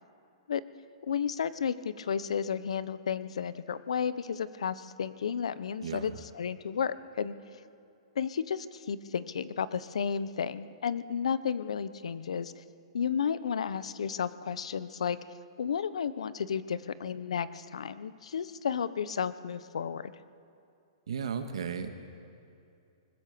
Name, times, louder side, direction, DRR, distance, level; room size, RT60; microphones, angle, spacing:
voice 1, 1.1-7.3 8.2-12.6 12.9-15.2 15.6-20.1, left 7 dB, 85° left, 15 dB, 1.0 m, -32 dB
voice 2, 5.8-6.2 21.1-21.9, right 6 dB, 70° right, 7 dB, 1.8 m, -35 dB
21.0 x 20.5 x 6.9 m, 2.6 s
hypercardioid pair, 180°, 3 cm